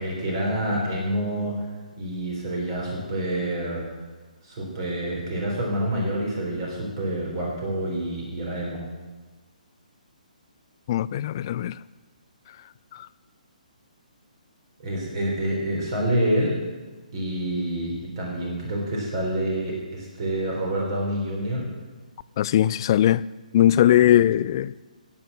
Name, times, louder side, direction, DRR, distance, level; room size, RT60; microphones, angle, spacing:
voice 1, 0.0-1.6 2.0-3.9 4.4-8.8 14.8-16.5 17.1-21.7 23.9-24.0, right 1 dB, 40° right, 3.9 m, -27 dB
voice 2, 10.9-11.7 22.4-23.2 23.5-24.7, left 12 dB, 30° left, 0.3 m, -19 dB
15.5 x 8.6 x 7.5 m
figure-of-eight pair, 135°, 4 cm